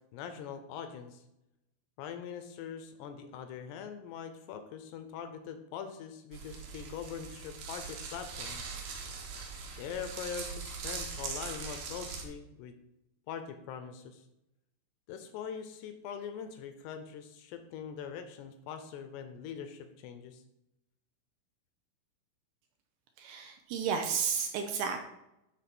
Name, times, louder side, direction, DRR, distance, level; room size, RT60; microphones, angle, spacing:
voice 1, 0.1-1.2 2.0-8.7 9.8-12.8 13.3-14.3 15.1-20.4, left 7 dB, 80° left, 8 dB, 2.4 m, -42 dB
sound 1, 6.3-12.2, right 5 dB, 65° right, 3.0 m, -41 dB
voice 2, 23.2-25.1, right 6 dB, 80° right, 4 dB, 2.7 m, -32 dB
12.5 x 4.2 x 6.0 m, 0.87 s
omnidirectional pair, 5.4 m